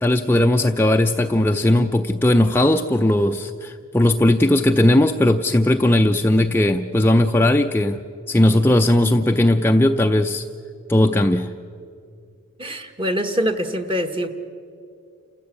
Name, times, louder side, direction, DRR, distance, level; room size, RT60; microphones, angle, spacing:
voice 1, 0.0-8.0 8.3-10.4 10.9-11.5, left 1 dB, 10° left, 4 dB, 0.5 m, -17 dB
voice 2, 12.6-14.3, equal, 25° right, 6 dB, 1.3 m, -24 dB
29.0 x 15.0 x 8.4 m, 2.4 s
head